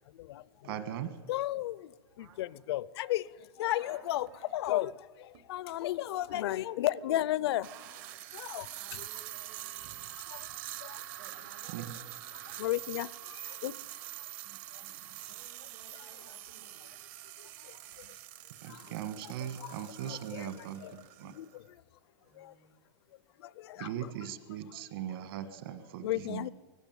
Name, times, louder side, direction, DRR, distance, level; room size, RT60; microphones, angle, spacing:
voice 1, 0.0-0.8 1.3-7.7 8.3-9.1 10.1-11.0 12.6-14.2 14.7-15.1 15.6-16.1 17.4-18.2 18.6-18.9 19.2-21.8 22.3-22.6 23.1-24.3 24.7-24.8 26.0-26.5, left 14 dB, 70° left, 0.6 m, -36 dB
voice 2, 0.6-1.2 11.7-11.8 14.5-14.6 14.8-15.0 18.6-21.3 23.8-26.5, right 10 dB, 55° right, 1.6 m, -39 dB
voice 3, 2.2-2.6 3.8-4.6 5.6-6.9 7.7-7.8 8.1-8.2 8.7-10.0 11.1-12.1 15.1-17.1 22.2-22.7, right 6 dB, 85° right, 3.8 m, -58 dB
sound 1, 4.2-4.4 5.3-5.4 7.5-21.6, right 15 dB, 40° right, 0.7 m, -45 dB
19.0 x 15.5 x 9.1 m
supercardioid pair, 175°, 14 cm